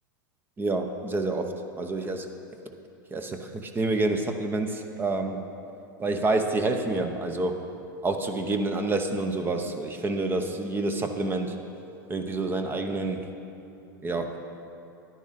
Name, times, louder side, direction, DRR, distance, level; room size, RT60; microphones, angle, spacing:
voice 1, 0.6-2.3 3.1-5.4 6.0-7.6 8.0-11.5 12.1-13.2 14.0-14.4, right 2 dB, 20° right, 6 dB, 0.8 m, -28 dB
11.0 x 10.0 x 4.1 m, 2.7 s
hypercardioid pair, 110°, 11 cm